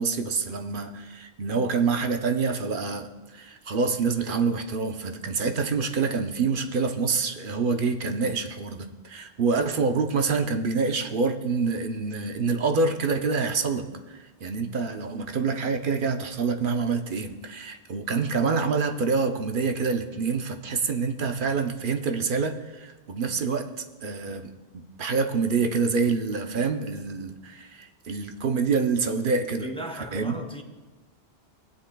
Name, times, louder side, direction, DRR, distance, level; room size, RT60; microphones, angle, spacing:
voice 1, 0.0-23.7 24.0-29.7 30.1-30.4, right 4 dB, 55° right, 0.9 m, -26 dB
voice 2, 29.6-30.6, right 1 dB, 5° left, 0.7 m, -36 dB
17.5 x 9.9 x 2.3 m
omnidirectional pair, 1.2 m